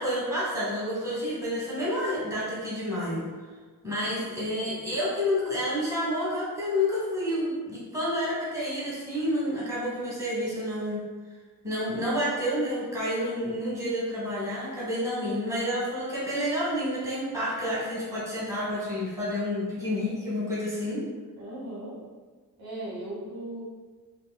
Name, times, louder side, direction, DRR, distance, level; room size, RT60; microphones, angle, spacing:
voice 1, 0.0-3.2 3.8-11.0 11.6-21.0, left 1 dB, 10° right, -8 dB, 1.1 m, -29 dB
voice 2, 4.0-4.5 21.4-22.0 22.6-23.6, right 1 dB, 70° right, -6 dB, 1.1 m, -38 dB
3.6 x 2.1 x 2.2 m, 1.4 s
cardioid pair, 105°, 38 cm